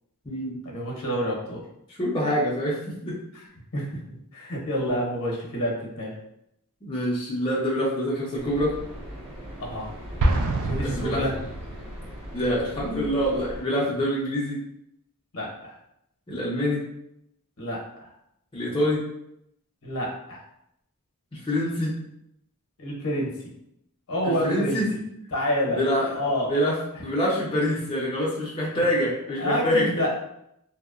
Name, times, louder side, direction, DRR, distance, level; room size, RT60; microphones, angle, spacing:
voice 1, 0.6-1.6 3.7-3.8 4.3-6.2 9.6-9.9 10.6-11.3 15.3-15.7 17.6-18.1 19.8-20.4 22.8-23.3 24.1-24.8 25.3-25.8 26.1-26.5 29.4-30.1, equal, 65° left, -2 dB, 0.7 m, -28 dB
voice 2, 1.9-3.2 6.8-8.7 10.8-11.2 12.3-14.6 16.3-16.8 18.5-19.0 21.3-21.9 24.2-24.9 25.7-30.0, equal, 25° left, -5 dB, 0.5 m, -26 dB
sound 1, 8.4-13.6, equal, 25° right, 0.9 m, -39 dB
Explosion, 10.2-12.0, right 2 dB, 70° right, 0.3 m, -25 dB
2.7 x 2.0 x 2.3 m, 0.78 s
head